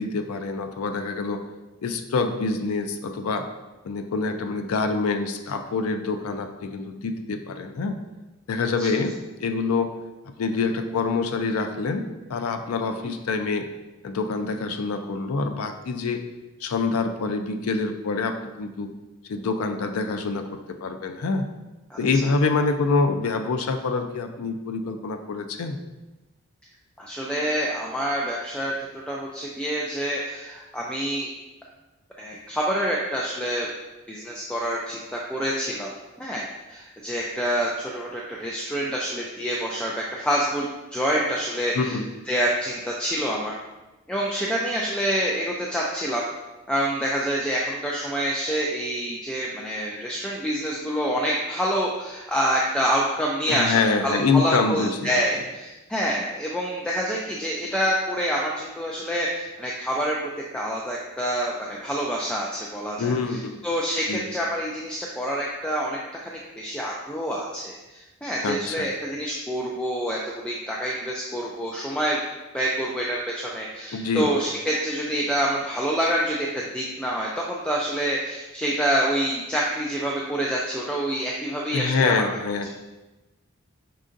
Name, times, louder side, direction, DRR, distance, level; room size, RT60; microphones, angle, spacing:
voice 1, 0.0-1.4 1.8-3.5 3.8-8.0 8.5-9.9 10.4-12.0 12.3-13.7 14.0-16.2 16.6-18.9 19.3-21.5 22.0-25.8 41.7-42.1 53.5-55.1 63.0-63.6 64.1-64.3 68.4-68.9 73.9-74.3 81.7-82.7, left 4 dB, 80° left, 6 dB, 0.4 m, -26 dB
voice 2, 27.0-31.3 32.2-33.7 34.1-35.9 36.2-42.0 42.3-43.5 44.1-46.2 46.7-60.2 60.5-72.2 72.5-82.2, equal, 5° left, -4 dB, 0.3 m, -27 dB
5.4 x 3.8 x 2.5 m, 1.1 s
head